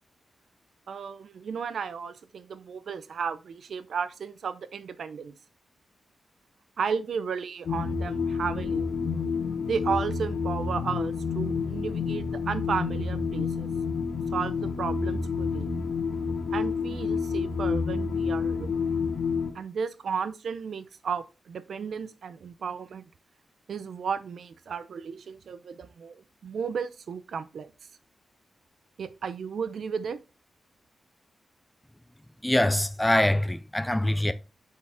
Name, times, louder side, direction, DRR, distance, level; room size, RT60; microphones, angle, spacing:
voice 1, 0.9-5.3 6.8-8.9 9.7-13.7 14.3-15.7 16.5-18.7 19.5-23.0 23.7-27.7 29.0-30.2, right 6 dB, 70° right, 0.5 m, -34 dB
sound 1, 7.7-19.5, left 5 dB, 85° left, 1.2 m, -29 dB
voice 2, 32.4-34.3, left 1 dB, 5° left, 0.4 m, -24 dB
7.3 x 4.7 x 3.5 m
wide cardioid pair, 160°, 0 cm